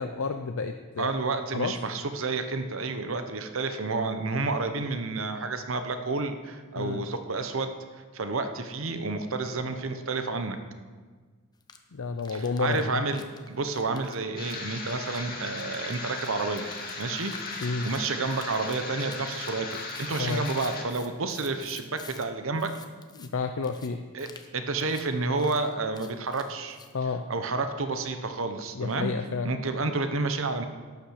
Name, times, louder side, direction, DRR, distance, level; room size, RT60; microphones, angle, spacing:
voice 1, 0.0-1.1 1.5-1.7 6.8-7.0 11.9-13.0 17.6-17.9 20.2-20.4 23.2-24.0 26.9-27.3 28.7-29.5, left 4 dB, 70° left, 6 dB, 0.6 m, -30 dB
voice 2, 1.0-10.6 12.3-19.7 20.0-22.7 24.1-24.3 24.5-26.8 27.3-29.1 29.4-30.7, right 3 dB, 65° right, 8 dB, 0.9 m, -30 dB
sound 1, 11.6-11.8 12.2-22.3 22.5-23.3 23.6-23.9 24.2-24.5 24.8-25.1 25.4-26.9, left 5 dB, 20° left, 0.8 m, -49 dB
sound 2, 14.4-20.8, left 3 dB, 45° left, 2.2 m, -37 dB
12.0 x 8.8 x 6.5 m, 1.5 s
head